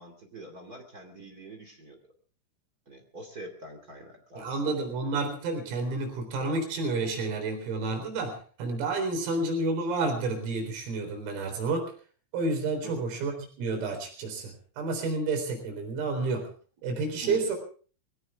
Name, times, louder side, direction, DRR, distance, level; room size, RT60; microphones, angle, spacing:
voice 1, 0.0-2.0 2.8-4.9 12.8-13.0 17.2-17.4, right 2 dB, 35° right, 3 dB, 1.6 m, -44 dB
voice 2, 4.4-11.9 12.3-16.5 16.8-17.6, right 3 dB, 90° right, 4 dB, 6.7 m, -30 dB
22.0 x 17.0 x 3.6 m, 0.40 s
omnidirectional pair, 5.9 m